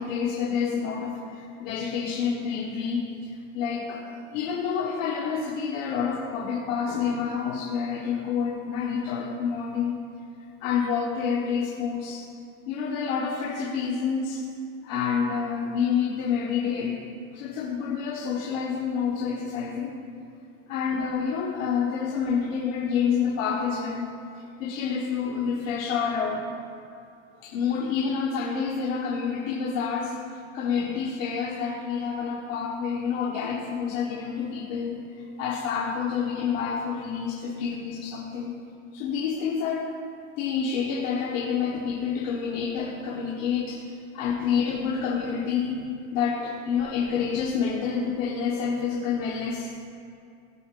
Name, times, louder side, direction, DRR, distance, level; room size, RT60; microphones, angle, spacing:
voice 1, 0.0-10.0 10.6-12.2 12.7-14.4 14.8-17.0 17.3-20.0 20.7-24.1 24.6-26.4 27.3-30.1 30.5-38.5 38.9-39.9 40.4-43.8 44.1-45.8 46.1-49.7, left 6 dB, 80° left, -3 dB, 1.4 m, -28 dB
17.0 x 7.9 x 2.5 m, 2.5 s
cardioid pair, 155°, 39 cm